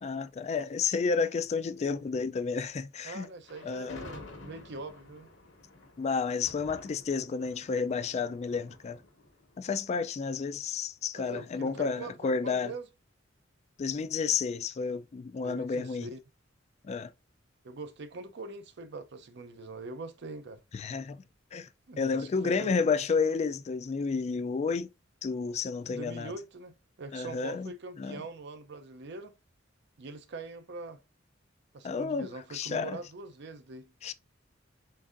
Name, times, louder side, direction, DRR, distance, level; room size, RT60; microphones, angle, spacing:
voice 1, 0.0-3.3 3.6-4.0 6.0-9.0 9.6-12.7 13.8-16.1 16.8-17.1 20.7-21.2 21.5-21.7 22.0-24.9 25.2-26.3 27.1-27.7 28.0-28.2 31.8-33.0 34.0-34.1, left 5 dB, 35° left, 0.3 m, -31 dB
voice 2, 3.0-5.3 11.1-12.9 15.4-16.2 17.6-20.6 21.9-22.9 25.9-29.3 30.0-31.0 31.7-33.9, right 3 dB, 65° right, 0.6 m, -43 dB
Thunder, 3.4-10.6, left 2 dB, 65° left, 1.1 m, -51 dB
3.9 x 3.6 x 2.5 m
head